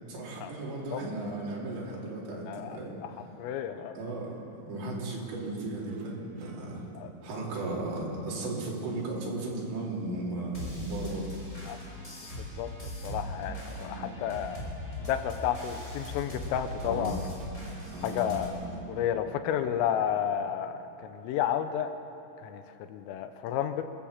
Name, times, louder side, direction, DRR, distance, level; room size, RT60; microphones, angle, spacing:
voice 1, 0.1-3.0 4.0-6.9 7.2-11.3 13.7-14.1 16.8-17.2 17.9-18.3, right 2 dB, 60° right, -4 dB, 5.7 m, -36 dB
voice 2, 2.5-3.1 3.4-3.9 7.0-7.1 11.7-11.8 12.4-12.7 13.0-14.7 15.0-17.2 18.0-18.6 18.9-21.9 22.4-23.8, left 9 dB, 85° left, 9 dB, 3.6 m, -31 dB
sound 1, 5.9-9.3 13.1-16.5 17.4-21.2, right 4 dB, 90° right, 1.8 m, -50 dB
sound 2, 10.5-18.5, left 1 dB, 15° left, 5.6 m, -40 dB
26.5 x 18.0 x 7.4 m, 3.0 s
omnidirectional pair, 5.8 m